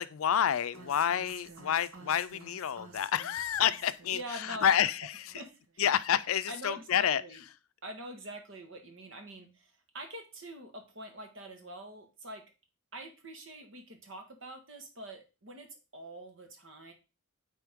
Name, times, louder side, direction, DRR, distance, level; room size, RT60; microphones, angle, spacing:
voice 1, 0.0-5.3 5.8-7.2, left 9 dB, 85° left, 0.4 m, -29 dB
sound 1, 0.7-5.0 5.3-5.7, right 4 dB, 90° right, 1.2 m, -52 dB
voice 2, 4.1-4.7 5.3-5.8 6.5-7.4 7.8-12.4 12.9-16.9, right 1 dB, 65° right, 1.5 m, -45 dB
9.2 x 3.7 x 3.6 m
head